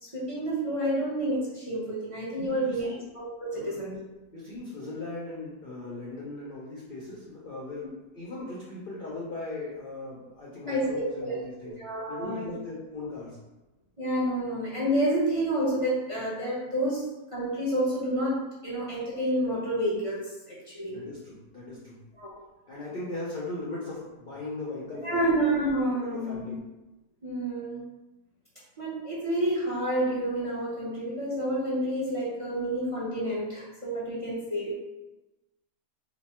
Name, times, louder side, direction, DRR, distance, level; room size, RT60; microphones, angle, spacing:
voice 1, 0.0-4.0 10.7-11.3 11.8-12.5 14.0-17.1 17.3-21.0 22.2-22.3 25.0-26.6 27.2-27.8 28.8-34.7, right 1 dB, 40° right, -8 dB, 0.4 m, -29 dB
voice 2, 2.4-3.0 3.5-3.8 4.3-11.7 12.1-13.4 20.9-22.0 22.7-25.4 25.9-26.6, left 2 dB, 60° left, -6 dB, 0.5 m, -38 dB
3.1 x 2.2 x 4.2 m, 1.0 s
omnidirectional pair, 1.8 m